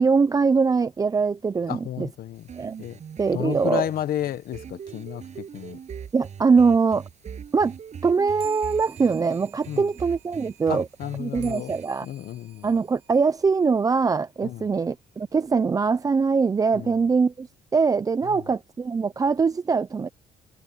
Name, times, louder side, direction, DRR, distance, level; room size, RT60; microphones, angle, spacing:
voice 1, 0.0-2.1 2.6-2.7 3.2-3.9 6.1-7.0 7.5-7.7 8.0-10.9 11.2-12.1 12.6-17.5 17.7-20.1, right 5 dB, 20° right, 0.5 m, -22 dB
voice 2, 1.7-2.4 2.8-3.0 3.3-5.8 9.7-9.9 10.7-11.7 12.0-12.7 14.4-14.7 16.7-16.9, left 11 dB, 60° left, 1.1 m, -32 dB
sound 1, 2.4-11.9, right 7 dB, 45° right, 8.0 m, -41 dB
sound 2, 8.4-14.2, right 16 dB, 85° right, 6.1 m, -51 dB
cardioid pair, 110°, 17 cm